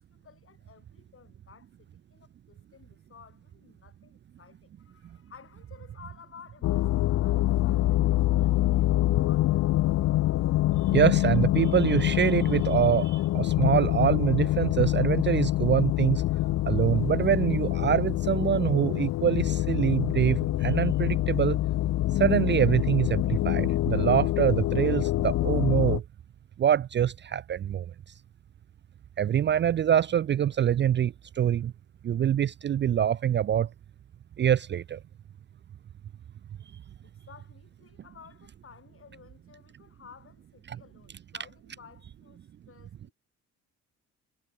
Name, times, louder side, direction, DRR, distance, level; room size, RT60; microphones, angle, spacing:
voice 1, 0.1-9.5 37.0-43.1, left 7 dB, 45° left, 6.3 m, -54 dB
sound 1, 6.6-26.0, left 15 dB, 60° left, 0.5 m, -25 dB
voice 2, 10.9-16.2 16.7-21.6 22.1-26.0 26.6-27.9 29.2-31.7 32.0-33.7 34.4-35.0 40.7-40.8, right 9 dB, 40° right, 0.4 m, -25 dB
cardioid pair, 90°, 30 cm